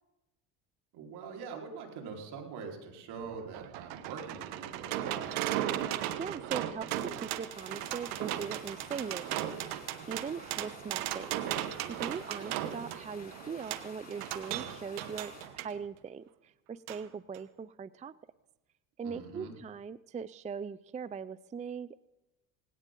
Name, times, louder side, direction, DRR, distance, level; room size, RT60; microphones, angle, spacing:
voice 1, 0.9-5.4 12.0-12.5 19.0-19.6, right 5 dB, 75° right, 1 dB, 4.4 m, -44 dB
sound 1, 3.2-15.7 16.9-17.0 17.3-17.4, right 12 dB, 90° right, 1.2 m, -37 dB
voice 2, 6.2-11.3 11.9-18.1 19.0-22.0, right 6 dB, 20° right, 17 dB, 0.4 m, -40 dB
sound 2, 7.5-15.5, left 2 dB, 20° left, 7.6 m, -52 dB
18.5 x 17.5 x 3.8 m, 0.99 s
supercardioid pair, 85°, 40 cm